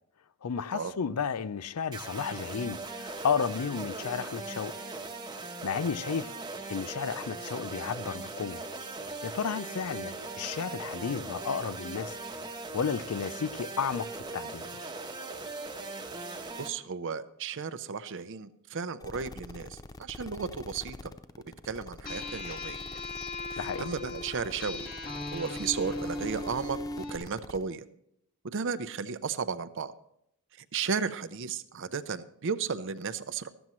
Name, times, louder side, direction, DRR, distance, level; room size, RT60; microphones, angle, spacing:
voice 1, 0.4-4.7 5.6-6.3 6.7-8.6 9.2-12.2 12.7-14.6 23.6-23.9, left 6 dB, 85° left, 0.5 m, -32 dB
sound 1, 1.9-16.7, right 3 dB, 20° right, 1.0 m, -39 dB
voice 2, 16.3-21.1 21.6-22.8 23.5-24.9 25.3-26.8 27.1-27.9 28.5-29.9 30.7-33.5, right 5 dB, 60° right, 0.6 m, -34 dB
sound 2, 19.0-27.6, left 2 dB, 15° left, 0.4 m, -46 dB
sound 3, 22.1-27.2, left 2 dB, 40° left, 2.0 m, -38 dB
14.0 x 13.0 x 3.1 m
head